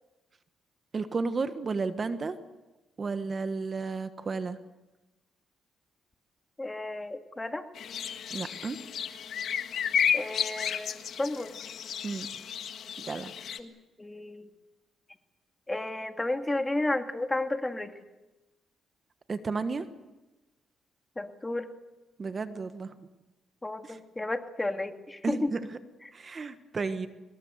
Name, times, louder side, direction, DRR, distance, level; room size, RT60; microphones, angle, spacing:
voice 1, 0.9-2.3 3.0-4.6 8.3-8.8 12.0-12.3 13.1-13.3 19.3-19.9 22.2-23.0 23.8-24.0 25.2-25.8 26.1-27.1, right 4 dB, 35° right, 10 dB, 1.3 m, -32 dB
voice 2, 6.6-7.7 10.1-11.5 13.6-13.7 14.0-14.5 15.7-17.9 21.2-21.7 23.6-25.5, left 2 dB, 15° left, 6 dB, 2.1 m, -32 dB
sound 1, 7.8-13.6, left 8 dB, 65° left, 1.7 m, -32 dB
25.5 x 21.0 x 8.0 m, 1.1 s
cardioid pair, 90°, 0 cm